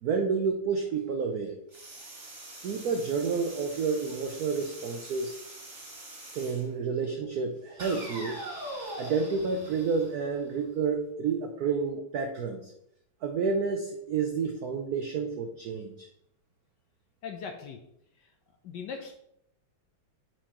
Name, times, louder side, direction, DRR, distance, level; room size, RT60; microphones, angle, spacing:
voice 1, 0.0-1.6 2.6-5.3 6.3-8.4 9.0-12.7 13.2-16.1, right 5 dB, 80° right, 4 dB, 0.8 m, -30 dB
sound 1, 1.7-6.7 7.8-10.7, right 1 dB, 35° right, 1.8 m, -43 dB
voice 2, 17.2-17.8 18.2-18.3 18.6-19.2, left 6 dB, 70° left, 3 dB, 1.1 m, -40 dB
8.9 x 4.5 x 2.9 m, 0.75 s
omnidirectional pair, 2.4 m